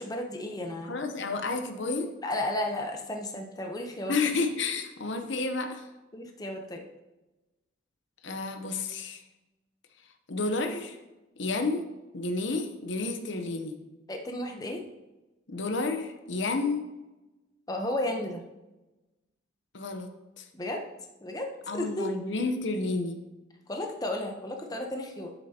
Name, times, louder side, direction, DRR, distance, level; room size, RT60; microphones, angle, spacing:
voice 1, 0.0-1.0 2.2-4.1 6.1-6.8 14.1-14.8 17.7-18.4 20.5-20.8 21.2-22.1 23.7-25.3, left 1 dB, 20° left, 2 dB, 0.8 m, -33 dB
voice 2, 0.9-2.1 4.1-5.9 8.2-9.2 10.3-11.0 11.4-11.9 12.1-13.8 15.5-16.9 19.7-20.1 20.4-20.5 21.7-23.2, left 3 dB, 65° left, 6 dB, 0.9 m, -30 dB
9.8 x 8.3 x 2.9 m, 1.0 s
head